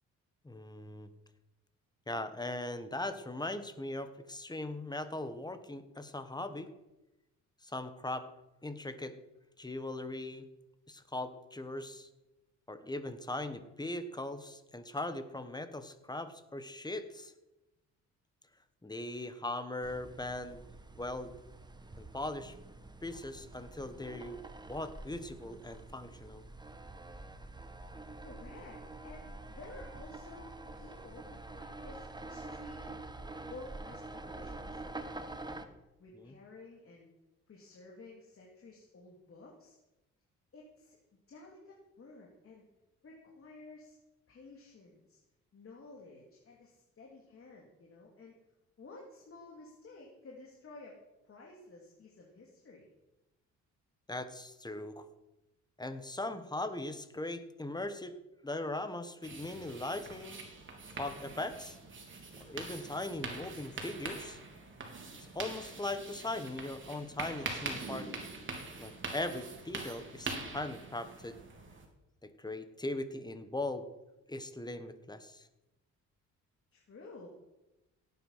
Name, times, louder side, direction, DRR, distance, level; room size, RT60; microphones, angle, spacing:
voice 1, 0.4-1.1 2.1-6.7 7.6-8.3 8.6-9.1 9.6-10.5 10.9-12.1 12.7-17.3 18.8-20.7 21.0-21.3 22.0-22.5 23.0-26.4 36.1-36.3 54.1-55.0 55.8-58.2 58.4-60.4 61.0-61.8 62.4-64.4 65.2-68.1 68.8-71.4 72.2-73.9 74.3-75.5, left 2 dB, 15° left, 10 dB, 1.6 m, -39 dB
sound 1, 19.8-35.7, right 2 dB, 15° right, 1.3 m, -47 dB
voice 2, 28.2-33.0 33.4-35.7 36.0-37.1 37.5-39.8 40.5-42.6 43.0-44.0 44.3-45.2 45.5-48.3 48.8-51.0 51.2-52.9 76.7-77.3, left 3 dB, 45° left, -2 dB, 3.0 m, -53 dB
sound 2, 59.2-71.9, right 3 dB, 40° right, 3.5 m, -43 dB
17.0 x 9.6 x 5.8 m, 0.96 s
cardioid pair, 90°, 30 cm